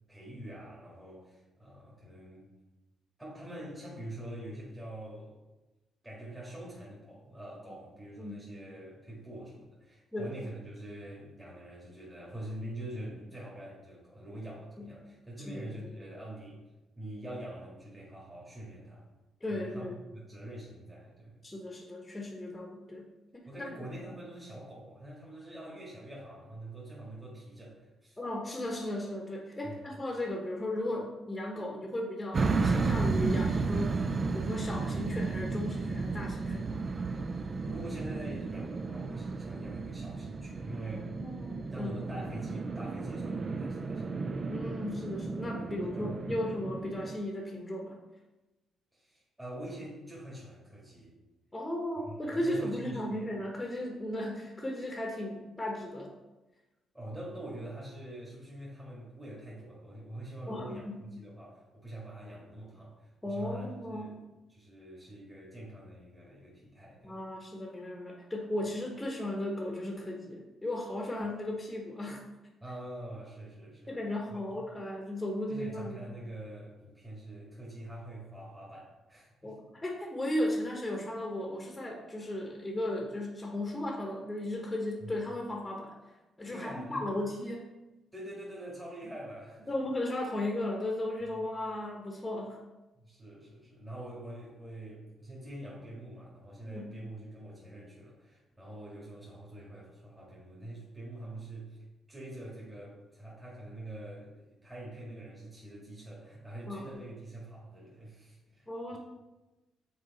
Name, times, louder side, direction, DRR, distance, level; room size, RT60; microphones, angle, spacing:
voice 1, 0.1-2.5 3.2-5.4 6.0-16.6 17.0-19.1 19.5-21.4 23.5-28.2 29.6-29.9 37.3-41.1 41.7-44.3 45.6-46.4 48.9-51.2 52.0-53.2 56.9-64.2 64.5-67.2 72.6-74.0 74.3-74.4 75.5-79.5 85.0-85.1 86.5-87.0 88.1-89.9 91.3-91.4 92.9-109.0, right 1 dB, 15° right, -6 dB, 1.8 m, -45 dB
voice 2, 19.4-20.0 21.4-23.8 28.2-34.0 34.3-36.8 41.2-42.0 44.5-48.0 51.5-56.1 60.5-61.0 63.2-64.2 67.0-72.2 73.9-76.0 79.4-85.9 86.4-87.7 89.7-92.6 96.6-96.9 106.7-106.9 108.7-109.0, left 1 dB, 15° left, 0 dB, 1.0 m, -36 dB
sound 1, 32.3-47.1, right 4 dB, 40° right, 0.5 m, -33 dB
6.6 x 4.0 x 4.1 m, 1.1 s
cardioid pair, 85°, 0 cm